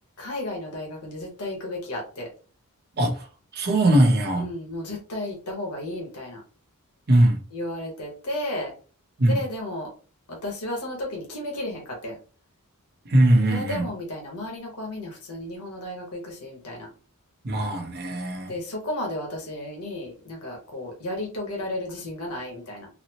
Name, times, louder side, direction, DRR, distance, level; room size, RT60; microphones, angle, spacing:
voice 1, 0.2-2.3 4.4-6.4 7.5-8.7 9.3-9.9 10.3-12.2 13.4-16.9 18.5-22.9, left 1 dB, 90° left, 1.2 m, -33 dB
voice 2, 3.0-3.3 3.5-4.5 7.1-7.4 9.2-9.4 13.0-13.9 17.4-18.5, right 1 dB, 45° right, 0.8 m, -20 dB
4.0 x 2.0 x 2.8 m
head